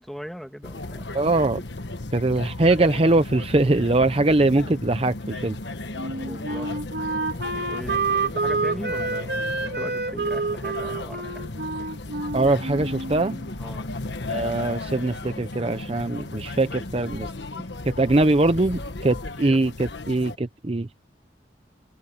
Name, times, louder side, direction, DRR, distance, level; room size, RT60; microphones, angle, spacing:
voice 1, 0.0-1.1 5.9-6.7 7.7-11.4 13.6-13.9 19.1-19.2, equal, ahead, 2.1 m, -39 dB
sound 1, 0.6-20.4, left 2 dB, 80° left, 1.4 m, -35 dB
voice 2, 1.1-1.6 2.1-5.6 12.3-13.4 14.3-17.3 18.0-20.9, right 2 dB, 35° right, 0.6 m, -22 dB
Wind instrument woodwind instrument, 6.0-13.5, right 3 dB, 70° right, 3.0 m, -28 dB
head